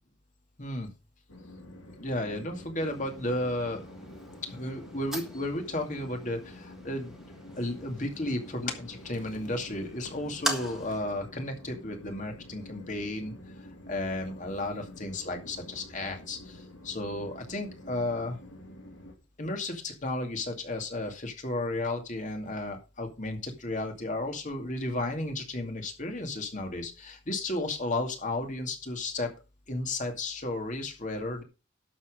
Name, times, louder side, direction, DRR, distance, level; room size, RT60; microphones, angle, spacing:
voice 1, 0.6-0.9 2.0-3.8 4.5-7.2 7.6-13.3 13.9-18.4 19.4-29.3 29.7-31.4, left 2 dB, 40° left, 4 dB, 2.4 m, -33 dB
Train, 1.3-19.1, left 1 dB, 90° left, 2.6 m, -48 dB
sound 1, 2.7-11.0, right 1 dB, ahead, 1.7 m, -41 dB
11.5 x 7.2 x 4.9 m, 0.30 s
head